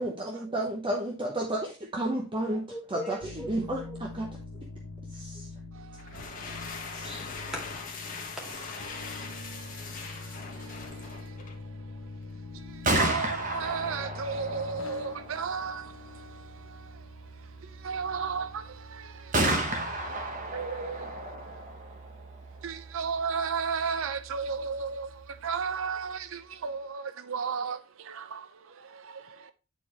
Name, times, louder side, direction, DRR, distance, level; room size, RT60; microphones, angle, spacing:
voice 1, 0.0-4.3 5.1-5.5 6.9-7.1, right 1 dB, 25° right, 0.8 m, -32 dB
voice 2, 2.7-3.5 3.8-4.0 4.3-4.4 5.3-5.4 7.0-8.9, equal, 5° right, 2.2 m, -42 dB
sound 1, 3.2-20.6, left 3 dB, 80° left, 1.1 m, -45 dB
voice 3, 5.8-7.1 8.9-9.6 10.0-10.3 13.0-16.4 16.7-16.8 17.8-19.6 20.0-20.2 20.5-21.1 22.6-28.5 28.9-29.2, right 5 dB, 70° right, 0.5 m, -34 dB
sound 2, 5.9-11.7, left 5 dB, 40° left, 1.1 m, -41 dB
Gunshot gunfire, 12.6-26.4, right 2 dB, 40° right, 1.1 m, -35 dB
9.0 x 4.2 x 3.0 m
head